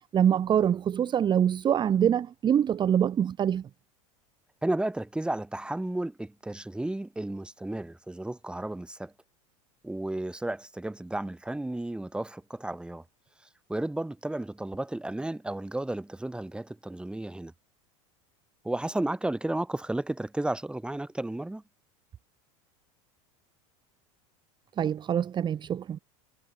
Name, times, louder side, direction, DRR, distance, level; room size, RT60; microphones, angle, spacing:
voice 1, 0.1-3.7 24.8-26.0, right 9 dB, 25° right, 0.8 m, -25 dB
voice 2, 4.6-9.1 9.8-13.0 13.7-17.5 18.6-21.6, right 1 dB, 5° right, 2.4 m, -33 dB
supercardioid pair, 115°, 17 cm